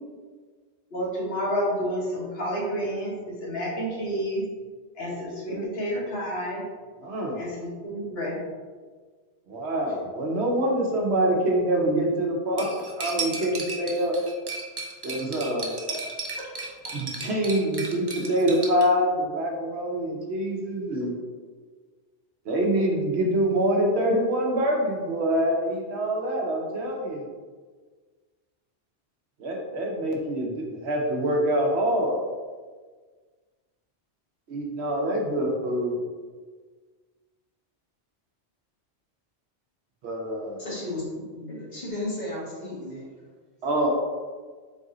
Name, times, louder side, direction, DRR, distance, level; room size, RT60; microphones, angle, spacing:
voice 1, 0.9-4.4 5.0-6.6 7.4-8.4, equal, 65° left, -5 dB, 1.3 m, -30 dB
voice 2, 7.0-7.4 9.5-12.7 13.0-14.2 15.0-15.7 16.9-21.1 22.5-27.2 29.4-32.2 34.5-36.0 40.0-40.6 43.6-43.9, right 1 dB, 75° right, 0 dB, 1.0 m, -25 dB
Cutlery silverware, 12.6-18.8, right 3 dB, 40° right, 0.4 m, -35 dB
voice 3, 40.6-41.0 41.3-43.0, left 2 dB, 40° left, -7 dB, 1.4 m, -34 dB
4.0 x 2.5 x 3.8 m, 1.5 s
omnidirectional pair, 1.1 m